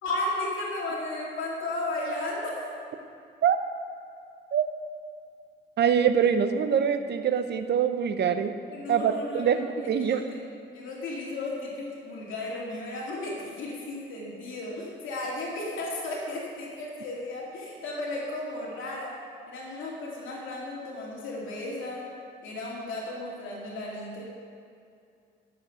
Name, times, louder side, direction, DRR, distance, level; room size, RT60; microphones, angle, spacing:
voice 1, 0.0-2.6 8.7-10.5 10.7-19.1 19.5-22.1 22.4-24.2, left 2 dB, 80° left, -3 dB, 2.4 m, -34 dB
voice 2, 5.8-8.5 8.9-10.2, right 8 dB, 60° right, 9 dB, 0.8 m, -24 dB
12.0 x 7.2 x 6.3 m, 2.4 s
cardioid pair, 90°, 20 cm